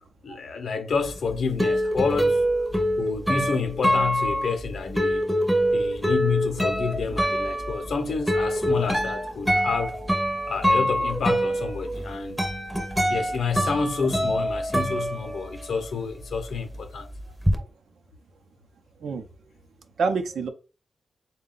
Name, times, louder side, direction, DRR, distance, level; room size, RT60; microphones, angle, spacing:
voice 1, 0.2-2.4 3.0-5.2 5.7-10.0 10.5-12.5 13.1-17.1, left 5 dB, 70° left, 0.6 m, -29 dB
sound 1, 1.0-15.8 16.1-17.6, equal, 5° right, 0.6 m, -25 dB
voice 2, 17.3-17.7 19.0-19.3 20.0-20.5, right 4 dB, 80° right, 0.6 m, -29 dB
3.8 x 2.2 x 3.8 m
wide cardioid pair, 140°, 0 cm